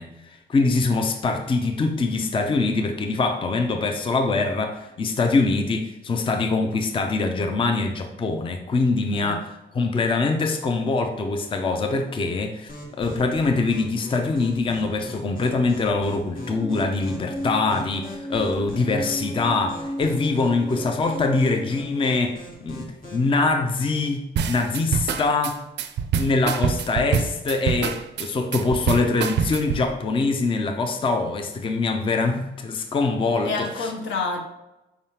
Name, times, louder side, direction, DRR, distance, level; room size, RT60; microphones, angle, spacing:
voice 1, 0.0-9.5 9.7-12.7 13.0-25.6 26.1-33.9, left 3 dB, 25° left, 5 dB, 0.5 m, -24 dB
voice 2, 9.1-9.4 33.4-34.4, left 3 dB, 75° left, 2 dB, 0.9 m, -28 dB
sound 1, 12.7-23.3, left 1 dB, 45° left, 1.3 m, -41 dB
sound 2, 16.3-22.2, equal, 15° right, 0.7 m, -35 dB
sound 3, 24.4-29.9, right 7 dB, 60° right, 0.4 m, -25 dB
4.7 x 3.5 x 2.8 m, 0.95 s
cardioid pair, 90°, 20 cm